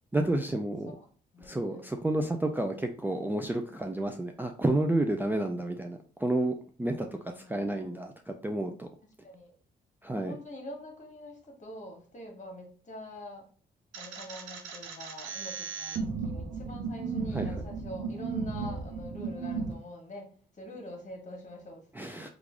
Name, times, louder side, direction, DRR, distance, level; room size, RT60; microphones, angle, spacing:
voice 1, 0.1-0.9 1.4-7.1 7.4-8.9 10.0-10.3 17.3-17.5 22.0-22.3, right 1 dB, 10° right, 4 dB, 0.4 m, -30 dB
voice 2, 1.3-1.9 7.2-7.7 9.2-9.5 10.1-13.5 14.0-21.8, left 1 dB, 40° left, 1 dB, 1.4 m, -45 dB
sound 1, 13.9-19.7, right 4 dB, 85° right, 0.6 m, -35 dB
3.1 x 2.5 x 3.6 m, 0.42 s
supercardioid pair, 55°, 19 cm